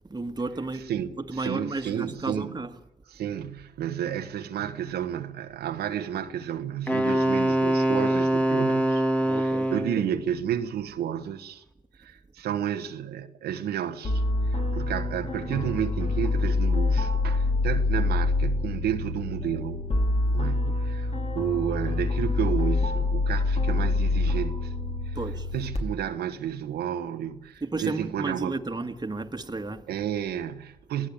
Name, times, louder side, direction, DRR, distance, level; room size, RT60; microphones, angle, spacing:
voice 1, 0.1-0.9 1.2-2.7 9.2-10.2 20.4-20.8 25.2-25.5 27.6-29.9, right 3 dB, 25° right, 1.9 m, -33 dB
voice 2, 0.7-2.6 3.1-11.6 12.0-19.8 20.3-24.7 25.0-25.2 25.5-28.6 29.9-31.1, right 10 dB, 85° right, 1.3 m, -31 dB
Wind instrument woodwind instrument, 6.9-10.0, right 1 dB, 10° left, 2.7 m, -23 dB
sound 1, 14.0-25.8, left 2 dB, 40° left, 4.7 m, -26 dB
27.0 x 17.5 x 8.7 m
supercardioid pair, 50°, 16 cm